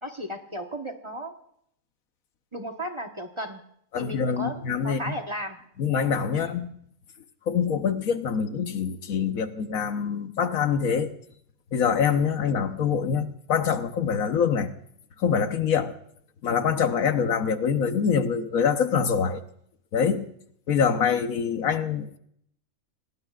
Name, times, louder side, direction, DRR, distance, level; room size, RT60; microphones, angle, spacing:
voice 1, 0.0-1.3 2.5-3.6 3.9-5.6 6.3-6.6, equal, 20° right, 3 dB, 1.2 m, -35 dB
voice 2, 3.9-5.0 5.8-6.7 7.5-11.1 11.7-14.7 15.2-15.9 16.4-19.4 19.9-20.3 20.7-22.2, left 7 dB, 70° left, 8 dB, 1.4 m, -25 dB
27.5 x 18.5 x 2.4 m, 0.70 s
omnidirectional pair, 1.5 m